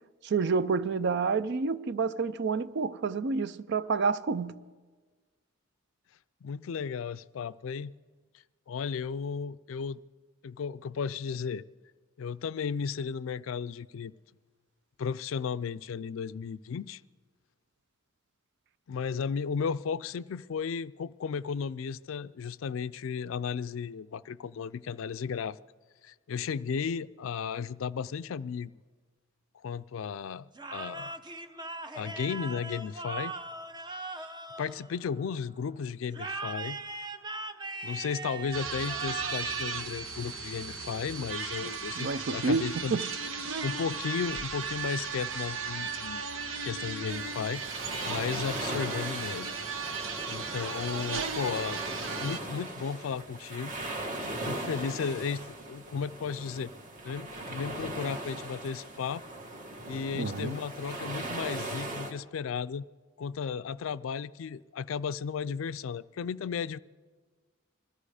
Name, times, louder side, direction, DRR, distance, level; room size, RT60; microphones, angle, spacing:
voice 1, 0.2-4.6 41.6-41.7 42.0-43.1 60.1-60.6, right 4 dB, 60° right, 0.5 m, -29 dB
voice 2, 6.4-7.9 8.7-10.0 10.4-11.6 12.2-14.1 15.0-17.0 18.9-25.6 26.0-28.7 29.6-30.5 30.7-31.1 31.9-33.3 34.6-36.8 37.8-43.0 43.6-46.2 46.6-47.6 48.0-49.5 50.3-51.8 52.2-53.7 54.4-56.7 57.0-59.2 59.9-62.9 63.2-66.8, left 6 dB, 80° left, 0.4 m, -34 dB
sound 1, 30.5-35.4 36.1-40.5, right 3 dB, 25° right, 0.7 m, -40 dB
sound 2, 38.5-52.4, right 5 dB, 75° right, 1.0 m, -36 dB
sound 3, 47.1-62.1, right 1 dB, 40° right, 1.5 m, -39 dB
21.0 x 14.0 x 4.9 m
head